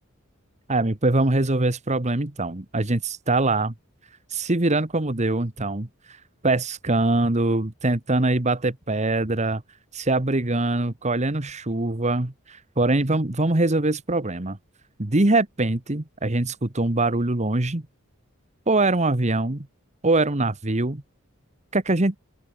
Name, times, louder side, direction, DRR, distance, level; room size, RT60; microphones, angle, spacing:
voice 1, 0.7-3.7 4.3-6.2 6.4-9.6 9.9-14.6 15.0-17.8 18.7-19.7 20.0-21.0 21.7-22.2, right 2 dB, 35° right, 1.5 m, -23 dB
open air
head